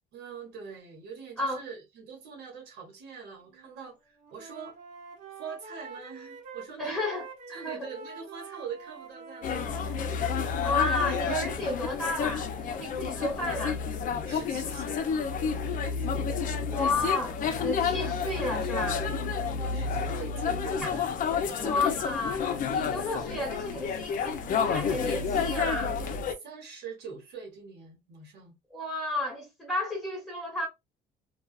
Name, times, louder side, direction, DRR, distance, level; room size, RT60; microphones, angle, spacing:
voice 1, 0.1-4.8 5.4-7.0 7.5-9.9 13.1-13.4 14.3-15.1 15.8-16.3 19.5-21.9 25.7-28.5, right 6 dB, 80° right, 1.2 m, -44 dB
Wind instrument woodwind instrument, 3.5-3.9 4.2-10.7, right 4 dB, 50° right, 0.9 m, -46 dB
voice 2, 6.8-7.9 10.6-13.8 16.7-19.1 20.8-20.9 21.6-26.0 28.7-30.7, left 2 dB, ahead, 1.0 m, -32 dB
sound 1, 9.4-26.3, left 6 dB, 55° left, 0.5 m, -30 dB
2.4 x 2.3 x 2.3 m
cardioid pair, 110°, 17 cm